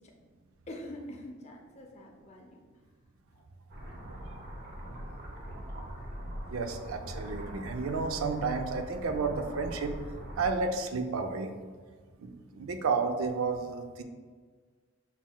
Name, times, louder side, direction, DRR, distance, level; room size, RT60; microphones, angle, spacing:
voice 1, 0.7-2.6 3.3-3.4, left 1 dB, 30° left, 1 dB, 0.5 m, -45 dB
sound 1, 3.7-10.5, right 1 dB, 50° right, 0.9 m, -42 dB
voice 2, 6.5-10.0 10.4-11.5 12.2-14.0, right 4 dB, 80° right, 6 dB, 0.5 m, -31 dB
5.9 x 3.8 x 2.2 m, 1.5 s
head